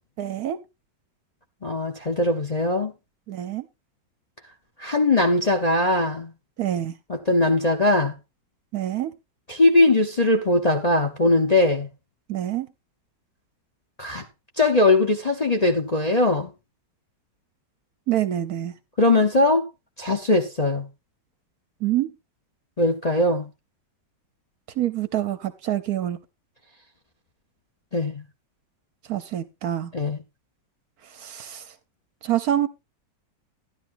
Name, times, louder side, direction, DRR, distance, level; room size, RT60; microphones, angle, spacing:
voice 1, 0.2-0.6 3.3-3.7 6.6-7.0 8.7-9.1 12.3-12.7 18.1-18.8 21.8-22.1 24.8-26.2 29.1-29.9 31.0-31.7 32.2-32.7, right 12 dB, 65° right, 1.1 m, -26 dB
voice 2, 1.6-2.9 4.8-6.3 7.1-8.1 9.5-11.9 14.0-14.3 14.6-16.5 19.0-19.6 20.0-20.9 22.8-23.5 27.9-28.2 29.9-30.2, left 2 dB, 30° left, 0.9 m, -20 dB
12.5 x 11.0 x 2.6 m
omnidirectional pair, 1.9 m